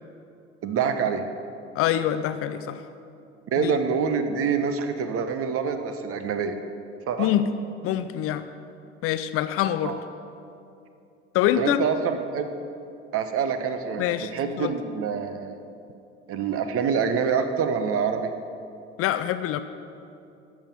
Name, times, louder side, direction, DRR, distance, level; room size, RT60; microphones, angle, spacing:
voice 1, 0.6-1.2 3.5-6.6 7.1-7.3 9.8-10.0 11.6-12.5 13.1-15.6 16.3-18.3, right 6 dB, 40° right, 8 dB, 1.0 m, -26 dB
voice 2, 1.7-2.8 3.6-3.8 7.2-7.5 7.8-8.4 9.0-10.0 11.3-11.8 14.0-14.3 14.6-14.7 19.0-19.6, left 12 dB, 40° left, 11 dB, 0.5 m, -25 dB
12.5 x 7.2 x 7.3 m, 2.6 s
figure-of-eight pair, 65°, 36 cm